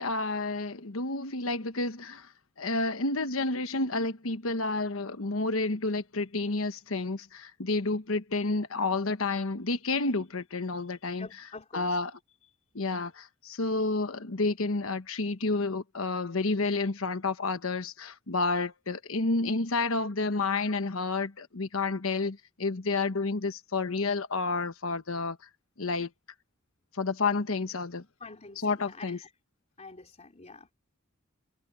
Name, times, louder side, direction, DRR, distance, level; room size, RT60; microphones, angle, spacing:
voice 1, 0.0-2.3 2.6-11.3 11.7-12.1 12.7-25.4 25.8-26.1 26.9-28.0 28.6-29.2, left 3 dB, 75° left, 1.2 m, -30 dB
voice 2, 11.2-12.0 28.2-29.3 29.8-30.7, left 3 dB, 35° left, 3.4 m, -47 dB
head